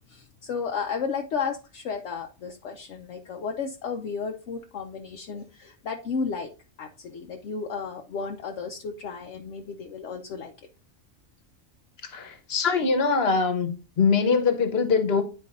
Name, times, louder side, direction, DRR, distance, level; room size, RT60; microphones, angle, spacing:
voice 1, 0.1-6.5 6.8-10.5, left 5 dB, 70° left, 1.0 m, -33 dB
voice 2, 12.1-13.7 14.0-15.2, left 5 dB, 55° left, 1.2 m, -22 dB
10.5 x 4.5 x 2.5 m
omnidirectional pair, 1.3 m